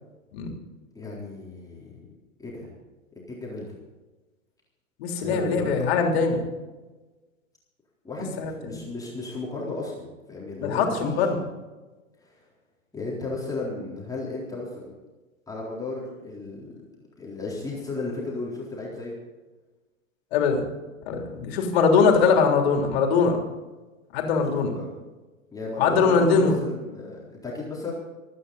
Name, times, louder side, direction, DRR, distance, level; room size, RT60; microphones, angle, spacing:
voice 1, 0.9-2.0 2.4-2.7 3.3-3.8 5.2-5.9 8.0-11.2 12.2-12.5 12.9-14.9 15.5-19.2 24.7-24.9 25.5-27.9, left 2 dB, 10° left, -5 dB, 3.8 m, -34 dB
voice 2, 5.0-6.5 8.4-8.5 10.6-11.4 20.3-20.7 21.1-23.4 24.1-24.7 25.8-26.6, left 5 dB, 50° left, 2 dB, 3.5 m, -21 dB
26.5 x 9.7 x 4.1 m, 1.2 s
figure-of-eight pair, 100°, 40 cm